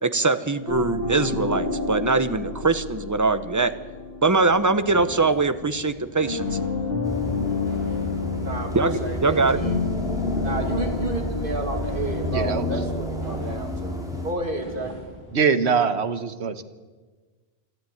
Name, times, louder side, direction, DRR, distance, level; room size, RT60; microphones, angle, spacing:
voice 1, 0.0-3.7 4.2-6.4 8.7-9.6, right 3 dB, 20° right, 12 dB, 0.8 m, -22 dB
sound 1, 0.7-5.9 6.2-12.5, left 3 dB, 60° left, 4.4 m, -30 dB
sound 2, 4.4-15.4, left 1 dB, 25° left, 6.0 m, -43 dB
sound 3, 7.0-14.3, left 1 dB, 5° right, 3.5 m, -31 dB
voice 2, 8.4-9.8 10.4-14.0 14.2-14.9, right 2 dB, 55° right, 4 dB, 2.7 m, -31 dB
voice 3, 12.3-12.7 15.3-16.6, right 6 dB, 85° right, 11 dB, 1.4 m, -23 dB
28.0 x 10.5 x 9.2 m, 1.4 s
omnidirectional pair, 1.1 m